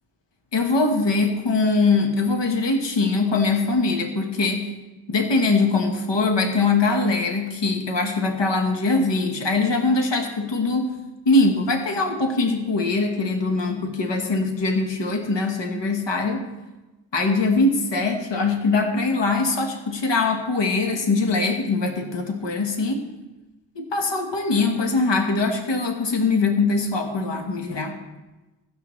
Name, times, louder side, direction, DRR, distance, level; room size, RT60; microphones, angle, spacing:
voice 1, 0.5-4.7 5.1-10.9 11.2-16.5 17.1-23.0 23.7-28.0, left 3 dB, 80° left, 3 dB, 1.3 m, -22 dB
15.5 x 12.5 x 3.1 m, 1.1 s
wide cardioid pair, 105°, 43 cm